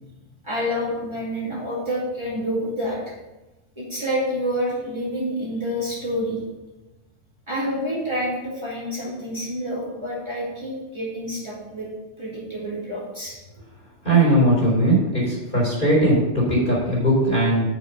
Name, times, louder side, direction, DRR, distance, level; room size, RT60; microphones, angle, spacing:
voice 1, 0.4-3.0 3.8-6.4 7.5-11.9 12.2-13.4, equal, 20° right, -7 dB, 2.4 m, -28 dB
voice 2, 14.0-17.6, right 1 dB, 45° left, -4 dB, 3.7 m, -19 dB
7.4 x 6.3 x 5.9 m, 1.1 s
omnidirectional pair, 1.3 m